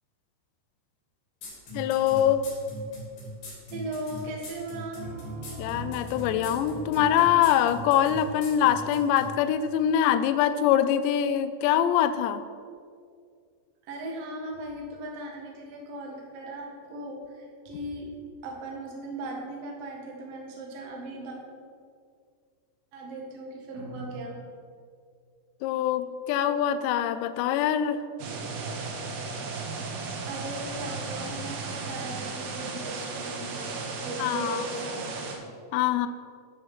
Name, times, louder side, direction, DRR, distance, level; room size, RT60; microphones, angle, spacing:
sound 1, 1.4-9.3, left 1 dB, 55° left, 4.5 m, -40 dB
voice 1, 1.7-2.5 5.6-12.4 25.6-28.0 34.2-34.7 35.7-36.1, left 10 dB, 85° left, 11 dB, 2.5 m, -24 dB
voice 2, 3.7-5.0 13.9-18.1 18.4-21.4 22.9-24.4 29.6-35.5, right 1 dB, 90° right, -1 dB, 1.3 m, -38 dB
Piano, 5.0-10.5, equal, 25° left, 2.4 m, -44 dB
sound 2, 28.2-35.4, right 4 dB, 70° right, 2.6 m, -35 dB
10.0 x 6.6 x 6.0 m, 2.2 s
omnidirectional pair, 5.6 m